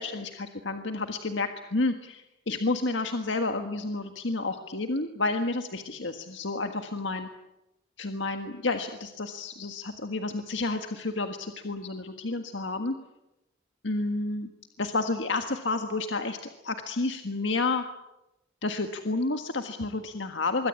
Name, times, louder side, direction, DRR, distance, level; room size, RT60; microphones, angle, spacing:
voice 1, 0.0-7.3 8.0-13.0 13.8-14.5 14.8-16.4 16.6-17.8 18.6-20.7, left 3 dB, 75° left, 6 dB, 1.6 m, -30 dB
25.5 x 22.5 x 8.6 m, 0.93 s
head